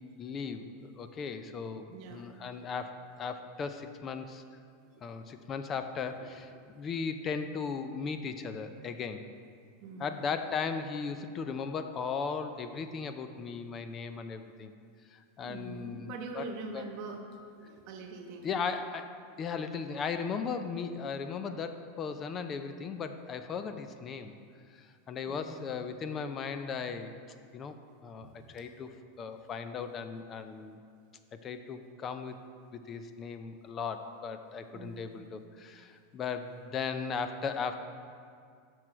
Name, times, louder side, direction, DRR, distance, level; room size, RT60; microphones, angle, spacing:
voice 1, 0.2-4.4 5.0-6.5 6.7-9.2 10.0-14.7 15.1-16.5 16.7-16.8 18.4-24.3 24.8-27.1 27.5-27.8 28.0-28.9 29.2-30.8 31.3-32.4 32.7-37.8, left 5 dB, 30° left, 9 dB, 0.4 m, -37 dB
voice 2, 1.9-2.2 4.9-5.0 6.1-6.2 6.5-6.7 9.8-10.3 15.4-17.2 17.5-18.5 25.3-25.6 28.2-28.4 34.7-35.1, right 4 dB, 55° right, 3 dB, 1.1 m, -44 dB
7.9 x 6.2 x 4.4 m, 2.2 s
supercardioid pair, 130°, 0 cm